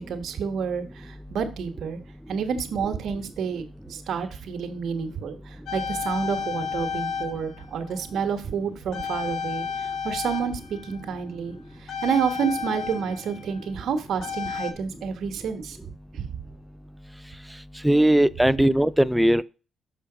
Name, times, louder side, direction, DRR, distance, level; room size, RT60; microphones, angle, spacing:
voice 1, 0.1-2.0 2.3-11.5 11.8-15.8 16.1-16.3, right 6 dB, 70° right, 1.3 m, -29 dB
sound 1, 5.7-8.6 8.9-14.7, left 6 dB, 75° left, 0.9 m, -33 dB
voice 2, 17.8-19.4, right 1 dB, 5° right, 0.4 m, -19 dB
7.0 x 5.1 x 4.9 m
cardioid pair, 90°, 0 cm